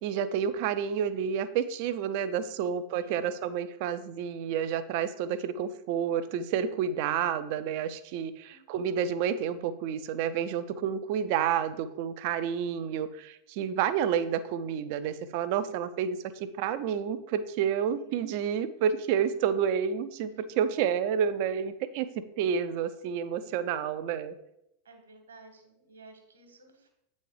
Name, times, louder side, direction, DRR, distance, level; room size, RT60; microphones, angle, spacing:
voice 1, 0.0-24.4, right 8 dB, 45° right, 12 dB, 0.5 m, -30 dB
voice 2, 2.9-3.5 8.4-9.0 17.9-18.4 24.8-26.9, right 3 dB, 70° right, 5 dB, 1.4 m, -55 dB
8.2 x 4.2 x 4.8 m, 0.81 s
figure-of-eight pair, 90°, 0 cm